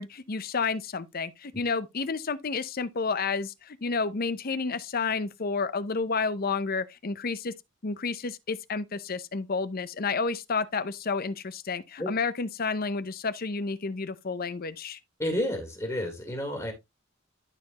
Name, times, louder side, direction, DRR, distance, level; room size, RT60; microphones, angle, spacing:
voice 1, 0.0-7.5 7.8-15.0, left 4 dB, 50° left, 0.7 m, -30 dB
voice 2, 15.2-16.7, left 1 dB, 20° left, 2.2 m, -30 dB
12.0 x 4.5 x 3.0 m
head